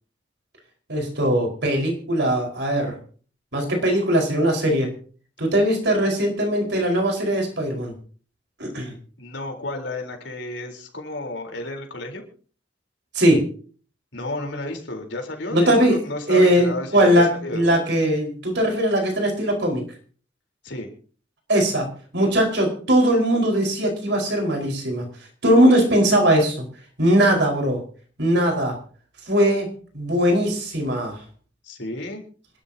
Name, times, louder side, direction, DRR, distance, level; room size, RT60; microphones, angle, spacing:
voice 1, 0.9-2.9 3.5-4.9 5.4-7.9 8.6-8.9 13.1-13.5 15.5-16.0 16.3-19.8 21.5-21.9 22.1-25.0 25.4-26.6 27.0-27.8 28.2-28.8 29.3-31.2, right 1 dB, 65° right, 2 dB, 4.9 m, -20 dB
voice 2, 9.2-12.2 14.1-17.6 20.6-20.9 31.6-32.2, left 2 dB, 70° left, 3 dB, 4.0 m, -32 dB
27.0 x 12.5 x 2.9 m, 0.41 s
head